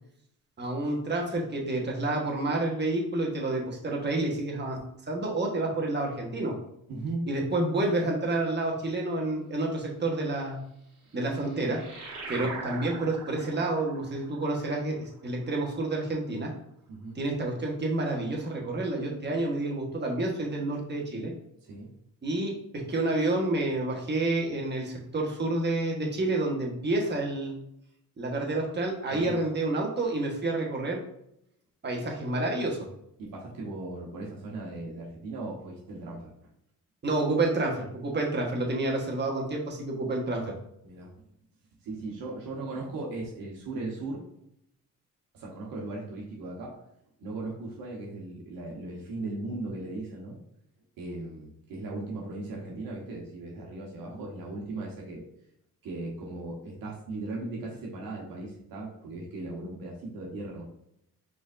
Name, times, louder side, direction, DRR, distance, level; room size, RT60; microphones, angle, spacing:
voice 1, 0.6-4.8 5.1-6.5 7.3-10.6 11.1-11.8 12.3-16.5 17.1-21.3 22.2-27.5 28.2-31.0 31.8-32.9 37.0-40.5, right 2 dB, 30° right, -1 dB, 1.3 m, -29 dB
voice 2, 6.9-7.3 12.3-12.5 16.9-17.2 21.6-21.9 29.1-29.4 33.2-36.3 40.8-41.1 41.8-44.2 45.3-46.8 47.2-50.4 51.0-55.2 55.8-60.6, right 2 dB, 75° right, -2 dB, 1.2 m, -37 dB
sound 1, 10.9-16.0, right 3 dB, 60° right, 1.7 m, -42 dB
4.8 x 3.9 x 2.6 m, 0.76 s
cardioid pair, 95°, 34 cm